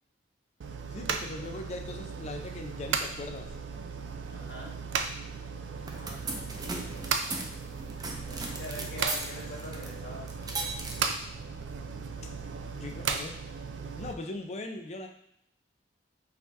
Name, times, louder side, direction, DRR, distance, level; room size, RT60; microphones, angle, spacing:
sound 1, 0.6-14.1, right 5 dB, 80° right, 0.4 m, -36 dB
voice 1, 0.9-3.5 8.8-8.9 9.2-9.3 12.7-13.4 13.8-15.1, left 2 dB, 40° left, 3 dB, 0.5 m, -40 dB
voice 2, 4.3-4.7 5.9-7.5 8.2-10.2, left 1 dB, 65° left, -4 dB, 1.5 m, -45 dB
sound 2, 5.7-13.1, right 3 dB, 20° right, 0.5 m, -40 dB
4.9 x 2.7 x 3.3 m, 0.76 s
head